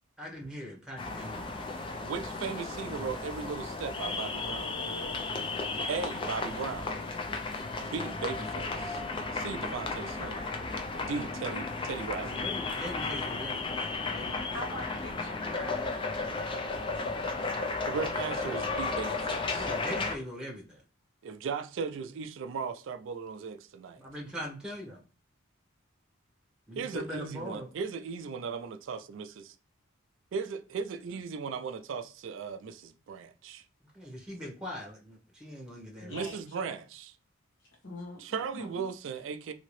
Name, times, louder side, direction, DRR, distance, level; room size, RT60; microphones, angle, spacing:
voice 1, 0.2-1.7 12.2-14.5 19.6-20.8 24.0-25.0 26.7-27.7 33.9-36.1, equal, 5° right, 0.9 m, -41 dB
sound 1, 1.0-20.2, left 3 dB, 25° left, 0.4 m, -34 dB
voice 2, 2.0-4.8 5.9-6.9 7.8-9.0 9.3-10.5 11.0-12.4 17.9-19.7 21.2-24.0 26.8-29.4 30.3-33.6 36.1-37.1 38.2-39.5, right 5 dB, 65° right, 0.3 m, -37 dB
voice 3, 14.5-16.0 36.0-36.3 37.8-38.2 38.5-38.8, left 1 dB, 65° left, 1.1 m, -42 dB
2.8 x 2.7 x 3.1 m
head